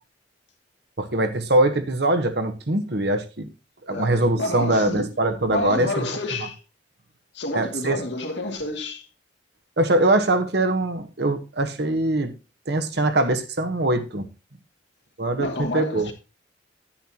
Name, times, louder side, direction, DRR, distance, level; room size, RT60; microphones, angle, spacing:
voice 1, 1.0-3.5 3.9-5.9 7.5-8.0 9.8-12.3 12.7-14.3 15.2-15.5 15.7-16.1, right 2 dB, 60° right, 1.2 m, -22 dB
voice 2, 3.9-5.1 5.5-6.6 7.3-9.1 15.4-16.1, left 2 dB, 70° left, 2.4 m, -29 dB
10.0 x 10.0 x 2.9 m
head